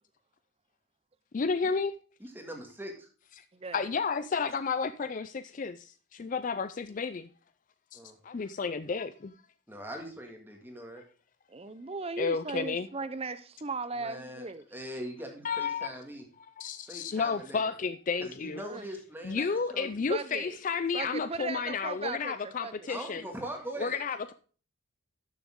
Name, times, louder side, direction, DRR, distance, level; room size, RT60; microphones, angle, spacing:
voice 1, 1.3-1.9 3.4-3.5 3.7-7.3 7.9-8.0 8.2-9.3 12.2-12.9 15.4-15.9 16.6-18.6 19.2-23.3 23.8-24.3, left 5 dB, 40° left, 0.4 m, -32 dB
voice 2, 2.2-3.1 7.9-8.2 9.7-11.0 14.0-16.2 16.9-17.7 18.2-20.0 22.9-24.0, right 1 dB, 10° right, 1.9 m, -42 dB
voice 3, 11.5-14.6 18.7-18.9 20.1-20.6 20.9-22.9, right 4 dB, 30° right, 0.6 m, -37 dB
12.5 x 6.8 x 3.7 m
head